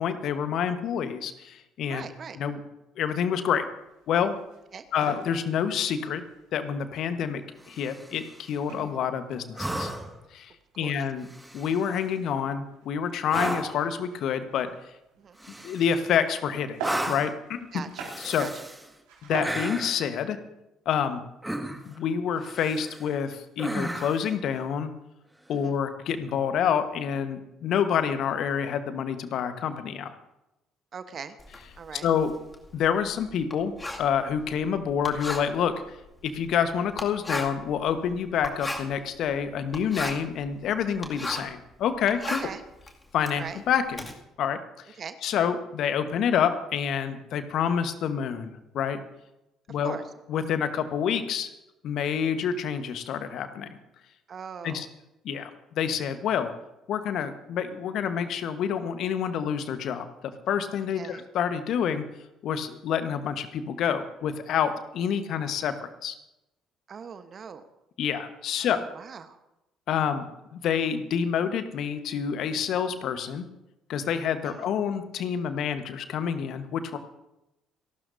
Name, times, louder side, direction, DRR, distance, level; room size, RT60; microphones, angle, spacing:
voice 1, 0.0-2.1 2.3-2.6 3.0-3.6 4.1-4.4 4.9-6.2 6.5-7.4 7.7-9.9 10.3-10.5 10.8-11.3 11.5-14.7 15.6-17.8 18.2-18.5 19.2-20.4 20.8-21.2 21.8-24.9 25.5-30.1 32.0-32.3 32.7-33.7 34.0-36.0 36.2-42.4 43.1-44.1 44.4-44.6 45.2-49.0 49.7-50.0 50.3-51.5 51.8-53.8 54.6-54.9 55.2-55.5 55.7-56.5 56.9-62.0 62.4-65.7 66.0-66.1 68.0-68.8 69.9-73.5 73.9-77.0, left 8 dB, 60° left, 10 dB, 1.2 m, -28 dB
voice 2, 1.9-2.4 4.7-4.8 10.8-11.0 15.2-15.4 17.7-18.1 18.4-18.6 25.5-25.8 30.9-31.4 31.8-32.1 42.4-42.6 43.4-43.6 44.9-45.2 49.8-50.0 54.3-54.9 60.9-61.2 66.9-67.6 68.6-69.4 74.4-74.7, right 6 dB, 45° right, 10 dB, 1.0 m, -40 dB
sound 1, 3.8-19.9, right 4 dB, 70° right, 4.7 m, -45 dB
sound 2, 7.6-8.3 9.6-10.2 11.2-12.0 13.3-13.9 15.4-16.1 16.8-17.4 18.0-18.9 19.4-20.0 21.4-22.0 22.4-23.1 23.6-24.3 26.2-26.3, right 1 dB, 5° right, 1.8 m, -34 dB
Writing, 31.4-41.6 41.9-44.1, left 2 dB, 20° left, 2.3 m, -37 dB
29.0 x 12.5 x 2.7 m, 0.93 s
hypercardioid pair, 50°, 0 cm